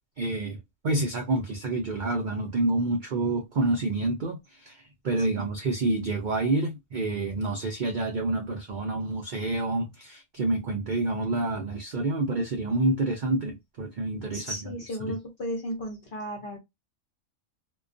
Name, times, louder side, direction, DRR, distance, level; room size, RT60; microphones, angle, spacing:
voice 1, 0.2-0.6 0.8-4.4 4.7-4.8 5.0-14.5 15.0-15.2, right 2 dB, 65° right, 0.4 m, -28 dB
voice 2, 14.3-16.6, equal, 50° left, 0.7 m, -34 dB
2.3 x 2.2 x 2.5 m
omnidirectional pair, 1.4 m